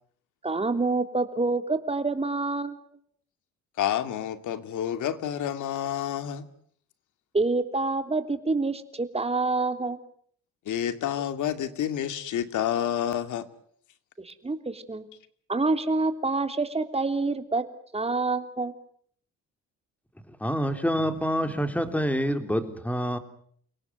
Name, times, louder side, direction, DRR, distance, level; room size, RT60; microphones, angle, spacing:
voice 1, 0.4-2.8 7.3-10.0 14.2-15.0 15.5-17.6 17.9-18.7, right 3 dB, 20° right, 8 dB, 3.3 m, -27 dB
voice 2, 3.8-6.4 10.7-13.5, left 10 dB, 75° left, 10 dB, 2.5 m, -29 dB
voice 3, 20.4-23.2, equal, 5° left, 8 dB, 3.6 m, -27 dB
30.0 x 18.0 x 9.5 m, 0.62 s
cardioid pair, 90°, 30 cm